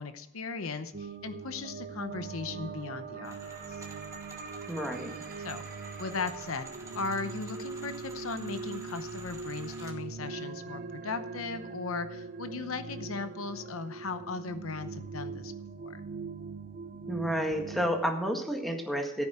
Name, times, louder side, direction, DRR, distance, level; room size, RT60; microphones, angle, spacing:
voice 1, 0.0-3.8 5.4-5.6 6.0-6.7 6.9-15.5 15.8-16.0, left 4 dB, 75° left, 10 dB, 0.8 m, -37 dB
sound 1, 0.9-17.9, right 4 dB, 45° right, 0.7 m, -41 dB
sound 2, 3.2-10.0, right 2 dB, 15° right, 2.2 m, -49 dB
voice 2, 4.7-5.2 17.1-19.3, equal, ahead, 3 dB, 1.7 m, -30 dB
14.5 x 9.0 x 4.4 m, 0.91 s
head